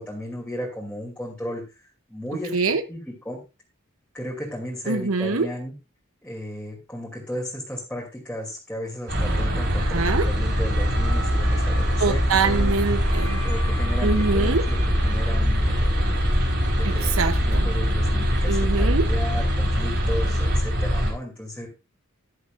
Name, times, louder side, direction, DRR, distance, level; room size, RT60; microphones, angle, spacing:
voice 1, 0.0-1.6 2.1-3.0 3.2-3.4 4.1-5.7 6.2-12.8 13.4-14.8 15.0-16.2 16.8-21.7, equal, 5° left, -3 dB, 2.7 m, -34 dB
voice 2, 4.9-5.5 9.7-10.3 12.0-13.4 14.0-14.6 16.8-17.7 18.5-19.1, right 4 dB, 80° right, 10 dB, 0.8 m, -24 dB
sound 1, 9.1-21.1, equal, 55° right, 4.4 m, -22 dB
13.0 x 11.5 x 2.5 m, 0.27 s
head